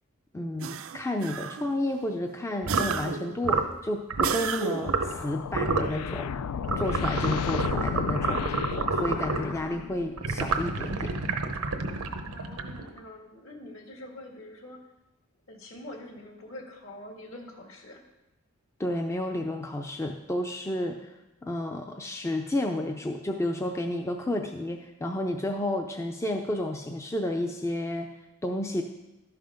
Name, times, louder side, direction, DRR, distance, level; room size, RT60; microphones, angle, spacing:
voice 1, 0.3-6.3 6.8-11.1 18.8-21.1 21.4-28.1 28.4-28.8, left 1 dB, 15° left, 3 dB, 0.4 m, -31 dB
sound 1, 0.6-1.8 2.7-3.4 4.2-5.1, right 7 dB, 65° right, 0.4 m, -33 dB
sound 2, 2.6-3.0 3.4-3.7 4.1-4.4 4.8-5.2 5.5-5.9 6.6-9.5 10.2-13.0, right 4 dB, 85° right, 0.8 m, -29 dB
sound 3, 4.8-10.3, left 7 dB, 90° left, 0.4 m, -33 dB
voice 2, 12.3-14.9 15.5-18.0, left 1 dB, 60° left, 2 dB, 1.7 m, -45 dB
12.0 x 5.7 x 5.1 m, 0.99 s
head